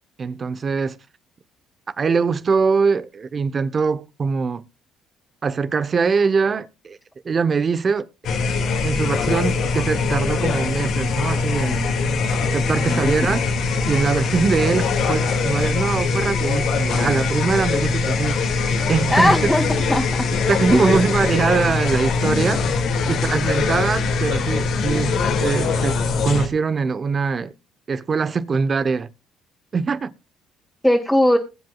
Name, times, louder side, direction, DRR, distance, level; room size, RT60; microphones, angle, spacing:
voice 1, 0.2-1.0 2.0-4.6 5.4-7.0 7.2-8.1 8.8-11.9 12.4-13.4 13.9-18.4 18.9-19.5 20.5-22.7 23.1-27.5 27.9-29.1 29.7-30.1, right 5 dB, 40° right, 0.9 m, -22 dB
sound 1, 8.2-26.5, left 4 dB, 65° left, 2.2 m, -22 dB
voice 2, 19.1-20.3 20.7-21.0 30.8-31.4, left 1 dB, 5° left, 2.5 m, -19 dB
21.5 x 7.7 x 2.4 m
supercardioid pair, 65°, 0 cm